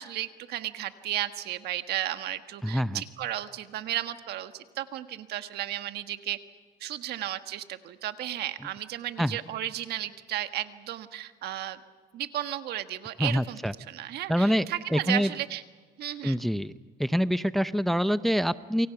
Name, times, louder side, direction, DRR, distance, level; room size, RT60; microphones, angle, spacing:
voice 1, 0.0-6.4 6.8-11.8 12.1-13.6 13.9-15.6 16.0-16.4, right 13 dB, 75° right, 9 dB, 1.5 m, -34 dB
voice 2, 2.6-3.0 9.2-9.4 13.2-13.7 14.3-14.7 14.9-15.3 16.2-16.7 17.0-18.9, equal, ahead, 14 dB, 0.6 m, -25 dB
28.5 x 24.5 x 5.9 m, 1.5 s
cardioid pair, 110°, 17 cm